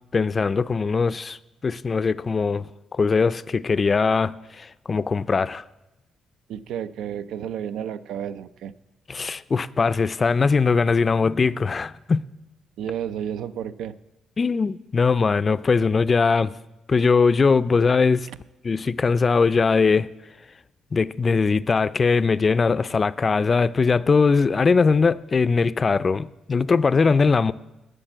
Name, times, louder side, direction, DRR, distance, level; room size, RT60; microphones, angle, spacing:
voice 1, 0.1-1.4 1.6-5.6 9.1-12.2 14.4-16.5 16.9-18.3 18.6-20.1 20.9-27.5, left 4 dB, 35° left, 0.4 m, -21 dB
voice 2, 6.5-8.7 12.8-14.0, right 9 dB, 80° right, 0.5 m, -31 dB
11.5 x 7.0 x 8.0 m
cardioid pair, 90°, 0 cm